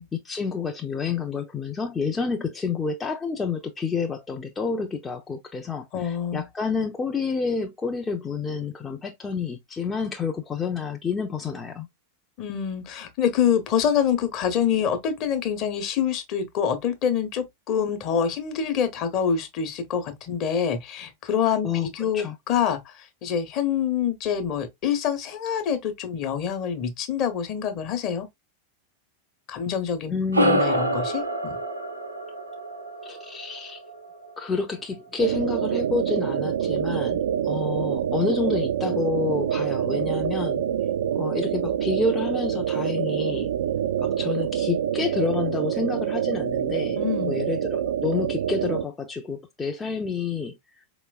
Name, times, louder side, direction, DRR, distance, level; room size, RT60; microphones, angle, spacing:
voice 1, 0.0-11.9 21.6-22.4 30.1-30.6 33.0-33.8 34.4-40.6 41.1-43.5 44.0-50.8, left 4 dB, 15° left, 0.5 m, -29 dB
voice 2, 5.9-6.5 12.4-28.3 29.5-30.2 30.4-31.6 37.7-37.8 46.9-47.4, left 8 dB, 40° left, 0.9 m, -26 dB
sound 1, 30.3-35.1, right 1 dB, 85° right, 0.7 m, -27 dB
sound 2, 35.2-48.8, right 9 dB, 60° right, 0.3 m, -26 dB
4.5 x 3.0 x 2.3 m
figure-of-eight pair, 90°, 0 cm